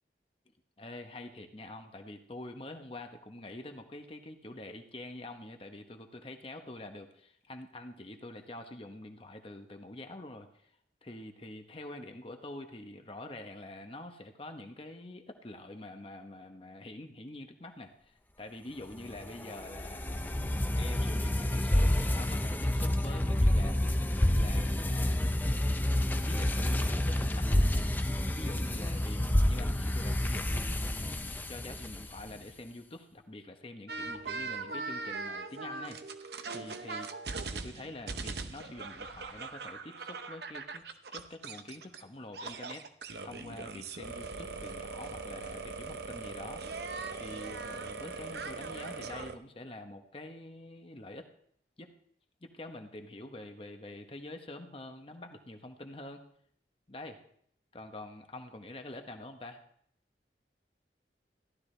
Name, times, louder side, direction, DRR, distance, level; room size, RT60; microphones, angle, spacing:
voice 1, 0.8-10.7 11.0-24.0 24.4-25.9 26.3-28.0 28.4-36.0 36.5-37.1 37.5-40.8 41.1-42.8 43.2-46.8 47.1-51.3 51.8-51.9 52.4-56.2 56.9-57.2 57.7-59.6, left 1 dB, 30° left, 5 dB, 0.9 m, -46 dB
sound 1, 19.0-32.4, left 1 dB, 10° left, 0.4 m, -29 dB
sound 2, 33.9-42.0 42.3-49.4, right 4 dB, 70° right, 0.8 m, -40 dB
15.0 x 12.0 x 3.3 m, 0.67 s
head